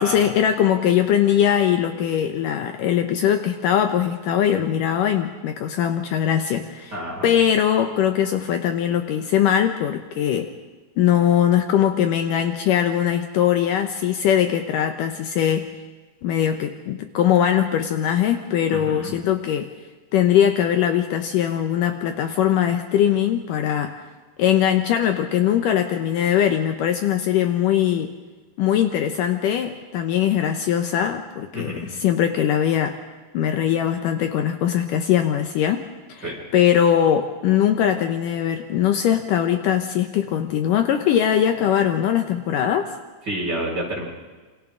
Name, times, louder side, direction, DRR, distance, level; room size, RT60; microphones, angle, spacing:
voice 1, 0.0-10.5 11.0-15.7 16.2-19.7 20.1-23.9 24.4-28.1 28.6-33.0 33.3-35.8 36.1-42.9, left 10 dB, 70° left, 6 dB, 2.4 m, -21 dB
voice 2, 6.9-7.3 18.7-19.1 31.5-31.9 36.2-36.4 43.3-44.0, right 1 dB, 25° right, -3 dB, 6.3 m, -29 dB
27.5 x 26.0 x 3.8 m, 1.3 s
omnidirectional pair, 4.2 m